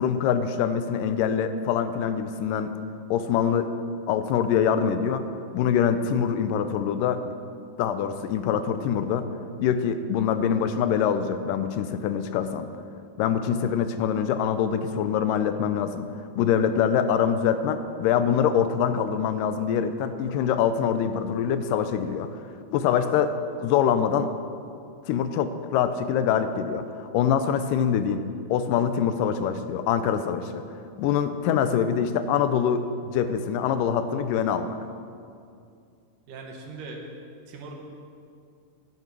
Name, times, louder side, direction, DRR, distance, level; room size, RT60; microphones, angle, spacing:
voice 1, 0.0-2.7 3.1-3.7 4.1-5.2 5.5-7.3 7.8-9.3 9.6-12.7 13.2-16.1 16.4-22.3 22.7-24.3 25.1-30.6 31.0-34.8, left 8 dB, 85° left, 10 dB, 2.2 m, -24 dB
voice 2, 36.3-37.1 37.5-37.7, right 3 dB, 75° right, 1 dB, 2.9 m, -39 dB
11.0 x 11.0 x 6.1 m, 2.4 s
omnidirectional pair, 3.9 m